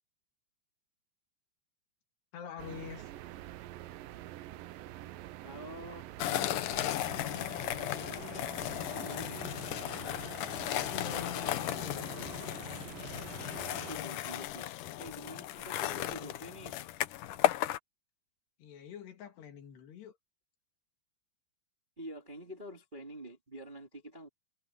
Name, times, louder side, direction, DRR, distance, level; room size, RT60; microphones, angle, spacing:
voice 1, 2.3-3.1 10.6-12.5 18.6-20.2, left 8 dB, 70° left, 4.5 m, -46 dB
sound 1, 2.6-14.0, right 14 dB, 85° right, 2.0 m, -46 dB
voice 2, 5.4-6.1 7.8-8.5 8.9-9.6 13.7-14.7 15.0-16.8 22.0-24.3, equal, 15° right, 1.6 m, -47 dB
sound 2, 6.2-17.8, left 13 dB, 90° left, 1.8 m, -35 dB
omnidirectional pair, 5.0 m